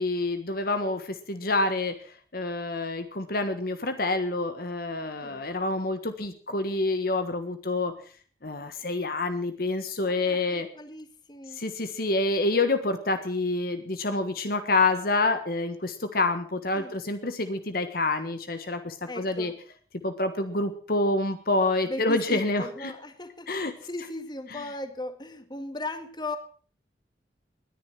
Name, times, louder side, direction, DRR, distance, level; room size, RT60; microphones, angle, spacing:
voice 1, 0.0-7.9 8.4-10.7 11.5-19.5 20.0-22.9 23.5-23.7 24.5-24.6, left 2 dB, 55° left, 9 dB, 1.4 m, -27 dB
voice 2, 10.1-11.6 16.7-16.9 19.1-19.5 21.9-23.5 23.8-26.4, left 2 dB, 25° left, 8 dB, 2.0 m, -37 dB
20.5 x 10.0 x 6.0 m, 0.43 s
head